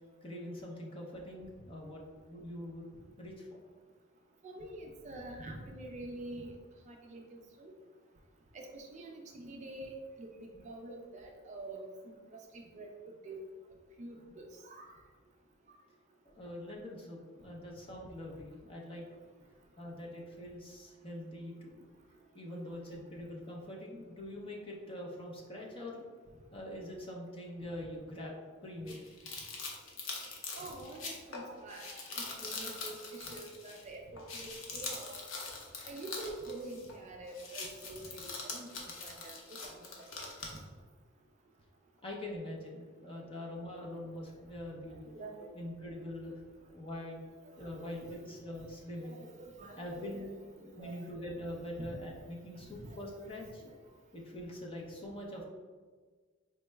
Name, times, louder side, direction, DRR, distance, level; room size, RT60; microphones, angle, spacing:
voice 1, 0.2-2.0 2.3-2.9 3.2-3.6 16.2-19.1 19.8-21.9 22.3-26.1 26.5-28.3 28.6-29.0 42.0-45.1 45.5-46.4 46.7-47.2 47.6-49.1 49.8-50.3 50.6-53.6 54.1-55.4, left 1 dB, 25° left, -2 dB, 0.6 m, -44 dB
voice 2, 4.4-6.5 6.9-7.7 8.5-12.2 12.5-12.9 13.2-13.4 14.0-14.9 30.5-35.2 35.8-39.9 40.2-40.6 43.0-43.1 45.1-45.6 47.6-47.9 49.0-51.0 51.8-51.9 52.8-53.0, right 2 dB, 35° right, 1 dB, 0.4 m, -46 dB
sound 1, 28.9-33.9 34.2-37.0 37.3-40.6, left 3 dB, 75° left, 0.7 m, -43 dB
4.4 x 2.0 x 3.2 m, 1.5 s
head